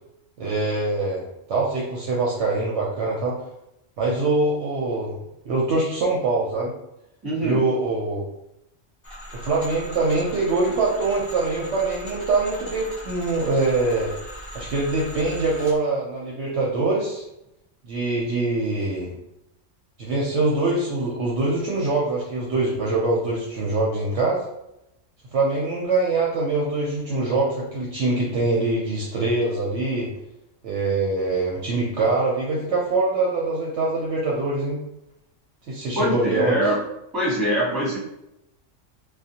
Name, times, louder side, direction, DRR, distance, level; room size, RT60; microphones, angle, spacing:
voice 1, 0.4-1.2 1.5-3.3 4.0-5.1 5.4-6.7 7.4-8.2 9.4-14.1 14.5-17.2 17.9-19.1 20.0-24.4 25.3-30.1 30.6-34.8 35.7-36.6, right 3 dB, 70° right, -4 dB, 0.8 m, -23 dB
voice 2, 7.2-7.6 35.9-36.8 37.1-38.0, equal, 20° right, -7 dB, 1.1 m, -23 dB
sound 1, 9.0-15.8, equal, 15° left, 0.8 m, -39 dB
2.5 x 2.3 x 2.7 m, 0.86 s
omnidirectional pair, 1.3 m